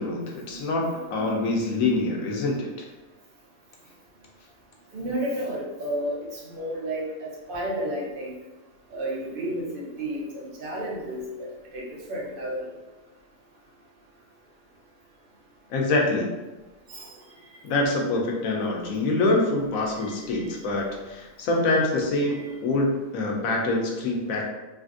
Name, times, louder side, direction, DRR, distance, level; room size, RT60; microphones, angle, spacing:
voice 1, 0.0-2.7 15.7-16.3 17.6-24.5, left 2 dB, 85° left, 0 dB, 1.1 m, -25 dB
voice 2, 1.1-1.6 4.9-8.3 8.9-11.5 11.7-11.8 12.1-12.7 16.9-17.1 20.3-20.4 22.3-22.4, right 1 dB, 50° right, -4 dB, 0.8 m, -32 dB
3.2 x 2.5 x 2.5 m, 1.1 s
omnidirectional pair, 1.4 m